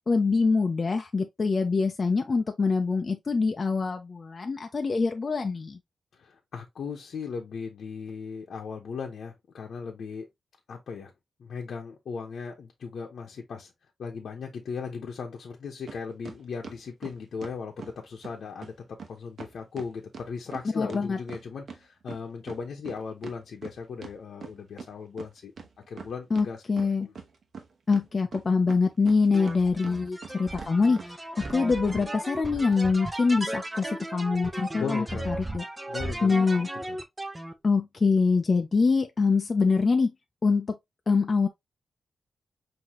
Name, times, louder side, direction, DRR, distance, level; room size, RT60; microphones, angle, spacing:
voice 1, 0.1-5.8 20.8-21.2 26.3-27.1 27.9-35.6 36.2-36.7 37.6-40.1 40.4-40.8 41.1-41.5, left 4 dB, 35° left, 0.5 m, -24 dB
voice 2, 6.1-10.3 10.7-11.1 11.4-13.7 14.0-25.5 25.9-26.6 27.0-27.1 34.7-35.3 35.9-36.3 36.9-37.0, left 5 dB, 70° left, 0.9 m, -37 dB
sound 1, 15.9-16.0 16.2-18.0 18.2-18.3 18.6-18.7 19.0-19.1 19.4-21.8 22.1-24.9 25.2-25.3 25.6-26.5 26.8-27.6 27.9-29.6 29.8-30.3 30.6-30.7 31.0-31.1 31.4-31.6 31.9-32.0, right 5 dB, 60° right, 1.0 m, -42 dB
sound 2, 29.3-37.5, right 1 dB, 15° right, 0.6 m, -35 dB
5.7 x 2.8 x 3.0 m
wide cardioid pair, 125°, 0 cm